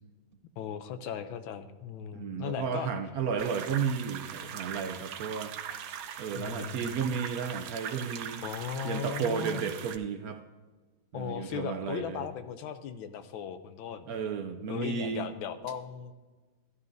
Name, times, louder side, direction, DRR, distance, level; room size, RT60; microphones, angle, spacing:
voice 1, 0.6-2.9 6.3-7.0 8.4-9.6 11.1-14.1 14.7-16.1, left 8 dB, 90° left, 10 dB, 1.5 m, -37 dB
voice 2, 2.1-5.5 6.2-8.4 8.8-10.4 11.1-12.3 14.1-15.3, right 6 dB, 70° right, 7 dB, 0.9 m, -33 dB
sound 1, 3.4-10.0, right 9 dB, 85° right, 1.5 m, -41 dB
14.0 x 11.0 x 2.6 m, 1.3 s
omnidirectional pair, 2.1 m